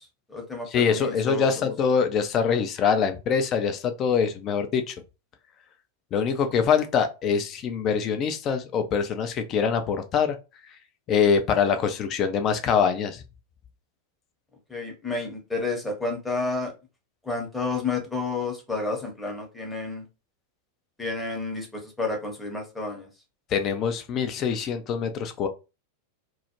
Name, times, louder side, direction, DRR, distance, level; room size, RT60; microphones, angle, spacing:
voice 1, 0.0-1.6 14.7-16.7 17.2-20.0 21.0-23.1, left 3 dB, 5° left, 0.8 m, -30 dB
voice 2, 0.7-4.9 6.1-10.4 11.1-13.2 23.5-25.5, left 6 dB, 30° left, 0.4 m, -24 dB
2.3 x 2.0 x 2.9 m
figure-of-eight pair, 90°, 0 cm